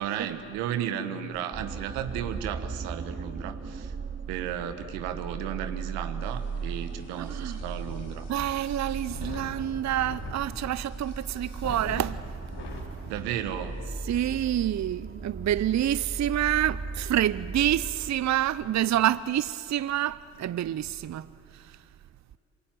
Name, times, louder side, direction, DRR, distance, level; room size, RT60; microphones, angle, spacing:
voice 1, 0.0-3.9 4.3-8.3 13.1-13.8, right 9 dB, 80° right, 1.6 m, -34 dB
sound 1, 1.5-18.1, right 4 dB, 25° right, 1.2 m, -37 dB
sound 2, 6.2-12.9 13.4-13.5 13.8-14.2, left 3 dB, 70° left, 4.6 m, -44 dB
voice 2, 7.1-7.6 8.3-12.2 13.9-21.3 21.5-21.8, right 12 dB, 40° right, 0.6 m, -28 dB
27.0 x 24.0 x 9.0 m
hypercardioid pair, 45°, 41 cm